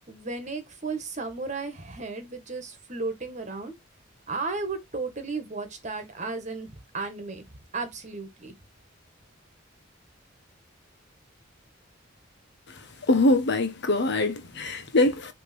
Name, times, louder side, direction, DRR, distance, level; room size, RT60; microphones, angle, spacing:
voice 1, 0.1-3.7 4.3-7.4 7.7-8.5, right 3 dB, 40° right, 1.8 m, -34 dB
voice 2, 12.7-15.3, left 2 dB, 60° left, 1.3 m, -24 dB
7.0 x 3.3 x 6.2 m
head